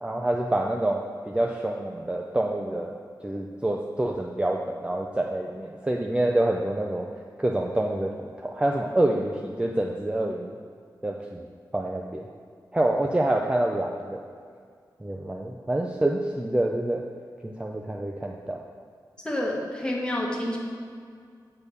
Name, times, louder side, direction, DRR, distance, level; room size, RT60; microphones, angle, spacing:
voice 1, 0.0-2.9 3.2-7.1 7.4-10.6 11.0-11.5 11.7-12.3 12.7-14.2 15.0-17.0 17.4-18.6, right 1 dB, 15° right, 0 dB, 0.5 m, -27 dB
voice 2, 19.2-20.6, left 1 dB, 10° left, -3 dB, 1.6 m, -28 dB
6.4 x 5.3 x 6.9 m, 2.2 s
wide cardioid pair, 90°, 8 cm